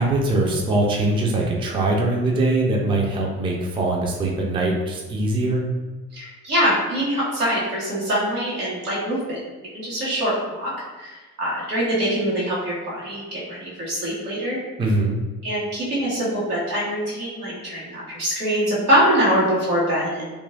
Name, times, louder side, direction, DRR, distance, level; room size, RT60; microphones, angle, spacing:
voice 1, 0.0-5.6 14.8-15.2, right 2 dB, 10° right, -1 dB, 0.4 m, -22 dB
voice 2, 6.1-9.4 9.7-10.7 11.0-14.6 15.4-20.2, equal, 90° right, -8 dB, 0.9 m, -23 dB
2.9 x 2.4 x 2.6 m, 1.2 s
figure-of-eight pair, 50°, 44 cm